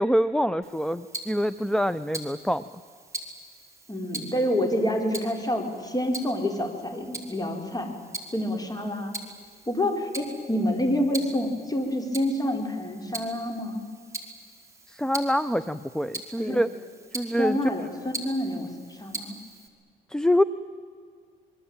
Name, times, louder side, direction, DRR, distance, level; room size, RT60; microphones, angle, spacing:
voice 1, 0.0-2.6 14.9-16.7 17.1-17.6 20.1-20.4, equal, 5° left, 11 dB, 0.7 m, -25 dB
Tick-tock, 0.6-19.7, right 2 dB, 15° right, 4.3 m, -42 dB
voice 2, 3.9-7.9 8.3-9.1 9.7-13.8 16.4-16.6 17.3-19.3, left 1 dB, 20° left, 4 dB, 4.9 m, -28 dB
26.0 x 22.5 x 9.0 m, 2.1 s
cardioid pair, 90°, 20 cm